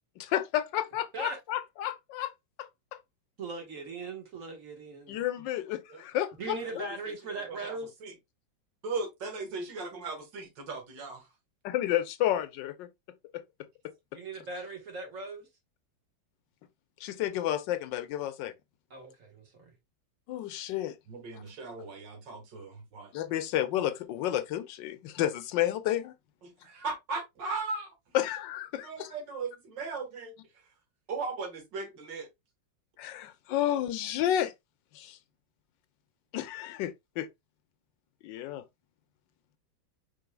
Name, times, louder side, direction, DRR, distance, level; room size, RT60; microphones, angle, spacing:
voice 1, 0.2-2.3 2.6-3.0 5.1-6.9 11.6-12.9 17.0-18.5 20.3-20.9 21.3-21.4 23.1-26.1 28.1-29.1 33.0-34.5 34.9-35.2 36.3-37.3 38.2-38.6, left 12 dB, 75° left, 1.3 m, -31 dB
voice 2, 3.4-5.5 6.4-7.9 14.1-15.5 18.9-19.7, right 3 dB, 45° right, 1.6 m, -39 dB
voice 3, 7.3-8.1 8.8-11.3 21.1-23.1 26.4-27.9 28.8-30.3 31.1-32.3, right 4 dB, 70° right, 2.1 m, -37 dB
5.1 x 4.6 x 2.2 m
omnidirectional pair, 2.0 m